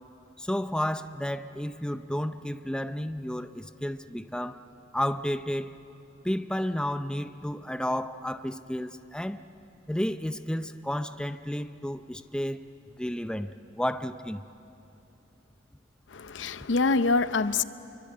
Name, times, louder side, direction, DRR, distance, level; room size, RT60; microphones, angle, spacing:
voice 1, 0.4-4.6 4.9-5.7 6.2-9.4 9.9-12.6 13.0-14.4, equal, 5° left, 10 dB, 0.6 m, -32 dB
voice 2, 16.1-17.6, left 3 dB, 75° left, 13 dB, 0.7 m, -25 dB
27.0 x 24.0 x 8.6 m, 2.8 s
head